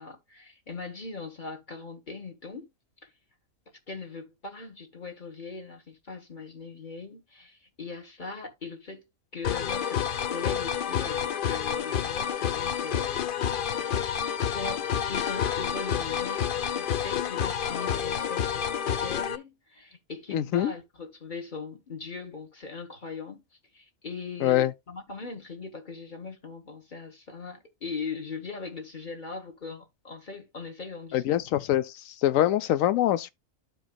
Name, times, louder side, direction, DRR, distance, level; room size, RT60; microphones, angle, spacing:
voice 1, 0.0-2.7 3.0-3.1 3.9-9.0 9.3-13.7 14.5-18.7 19.0-23.4 23.7-31.2, left 4 dB, 35° left, 1.5 m, -40 dB
sound 1, 9.4-19.4, left 8 dB, 55° left, 0.6 m, -29 dB
voice 2, 20.3-20.7 24.4-24.7 31.1-31.9 32.2-33.3, left 13 dB, 80° left, 1.0 m, -24 dB
13.0 x 4.6 x 2.3 m
omnidirectional pair, 1.4 m